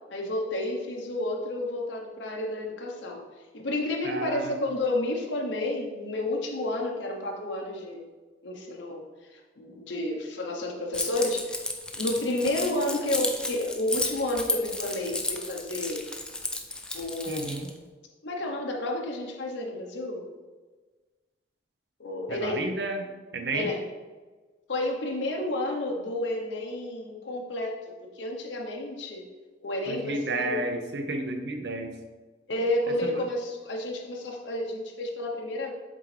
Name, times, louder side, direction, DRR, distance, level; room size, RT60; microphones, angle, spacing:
voice 1, 0.1-3.2 3.5-8.1 8.4-9.0 9.6-11.7 11.9-16.1 16.9-17.6 18.2-20.3 22.0-22.6 23.5-23.8 24.7-27.7 28.0-29.3 29.6-30.6 32.5-35.7, left 1 dB, 85° left, 0 dB, 0.8 m, -31 dB
voice 2, 4.0-4.6 17.3-17.7 22.3-23.7 29.9-31.9 33.0-33.3, right 2 dB, 65° right, 5 dB, 0.7 m, -32 dB
Keys jangling, 10.9-17.7, left 2 dB, 5° left, 0.4 m, -33 dB
7.6 x 3.8 x 3.3 m, 1.3 s
head